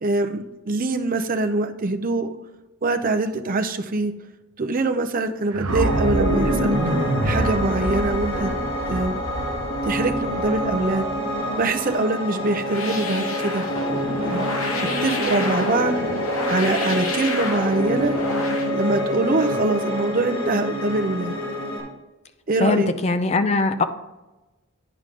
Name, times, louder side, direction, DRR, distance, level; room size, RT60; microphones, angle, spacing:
voice 1, 0.0-2.3 2.8-4.1 4.6-7.0 7.2-8.5 8.9-9.2 9.8-11.1 11.6-13.6 14.2-14.5 15.0-16.0 16.5-18.2 18.7-21.4 22.5-22.9, right 2 dB, 40° right, 6 dB, 0.6 m, -24 dB
sound 1, 5.5-11.6, right 1 dB, 80° right, 0.8 m, -27 dB
Piano, 5.7-21.8, equal, 60° left, 1.8 m, -27 dB
sound 2, 12.6-18.7, left 3 dB, 75° left, 1.3 m, -30 dB
voice 2, 22.6-23.8, left 3 dB, 30° left, 10 dB, 0.4 m, -21 dB
9.8 x 5.0 x 3.8 m, 1.1 s
head